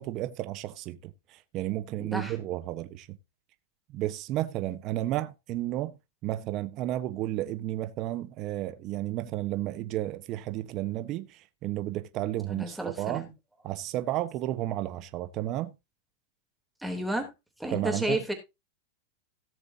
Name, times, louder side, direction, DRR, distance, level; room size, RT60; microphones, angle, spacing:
voice 1, 0.0-3.2 3.9-6.0 6.2-13.3 13.6-15.7 17.7-18.2, right 14 dB, 40° right, 1.1 m, -32 dB
voice 2, 2.0-2.3 12.5-13.3 16.8-17.3 17.6-18.3, right 1 dB, 5° right, 3.3 m, -32 dB
17.5 x 6.8 x 2.8 m
supercardioid pair, 135°, 0 cm